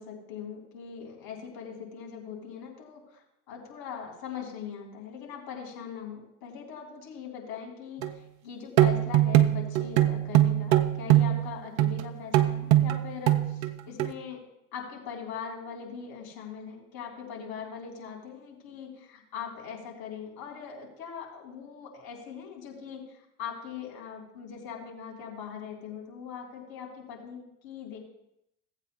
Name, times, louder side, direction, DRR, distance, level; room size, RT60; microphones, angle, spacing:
voice 1, 0.0-14.4 14.7-28.0, left 7 dB, 60° left, -2 dB, 3.7 m, -41 dB
sound 1, 8.0-8.1 8.8-11.5 11.8-12.1 12.3-13.7 14.0-14.1, right 13 dB, 80° right, 0.7 m, -22 dB
18.0 x 8.2 x 2.3 m, 0.83 s
hypercardioid pair, 65°, 41 cm